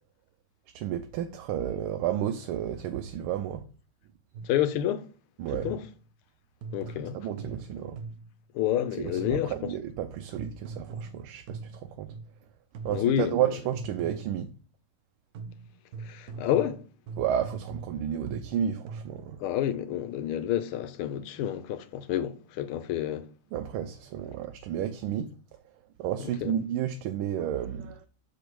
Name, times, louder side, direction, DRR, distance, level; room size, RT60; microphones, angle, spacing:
voice 1, 0.7-3.6 5.4-5.7 7.1-8.0 9.0-12.1 12.8-14.5 17.2-19.4 23.5-25.3 26.0-28.0, right 10 dB, 80° right, 1.5 m, -31 dB
sound 1, 4.3-4.7 5.6-6.1 6.6-8.4 9.2-9.6 10.3-12.4 12.7-13.2 13.7-14.5 15.3-19.3, right 4 dB, 65° right, 0.9 m, -42 dB
voice 2, 4.5-5.1 5.6-5.8 6.7-7.2 8.5-9.5 12.9-13.4 16.1-16.8 19.4-23.3 26.2-26.5, left 11 dB, 85° left, 1.6 m, -29 dB
6.6 x 5.1 x 4.6 m
omnidirectional pair, 2.3 m